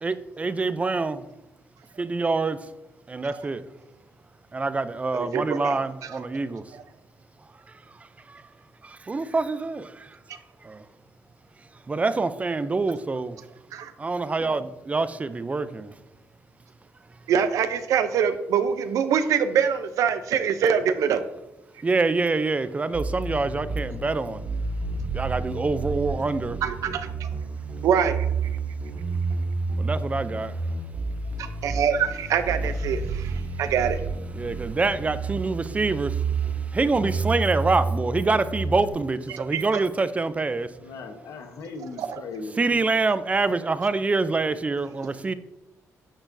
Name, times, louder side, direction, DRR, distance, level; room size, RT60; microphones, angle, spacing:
voice 1, 0.0-1.2 2.0-2.6 3.1-3.6 4.5-6.6 8.3-8.4 8.8-10.1 10.6-10.8 11.9-13.4 14.0-15.9 21.8-24.4 25.1-26.6 29.8-30.5 34.3-36.2 36.7-40.7 42.6-45.3, right 3 dB, 25° right, 0.5 m, -26 dB
voice 2, 5.1-6.3 6.7-6.8 13.7-13.9 17.3-21.2 26.6-27.3 27.8-28.3 31.6-34.0 39.3-39.8 42.0-42.2, right 7 dB, 85° right, 0.6 m, -24 dB
sound 1, 22.9-38.9, right 3 dB, 60° right, 2.3 m, -30 dB
voice 3, 40.8-42.8, left 3 dB, 85° left, 1.0 m, -38 dB
10.0 x 6.0 x 2.7 m
cardioid pair, 100°, 6 cm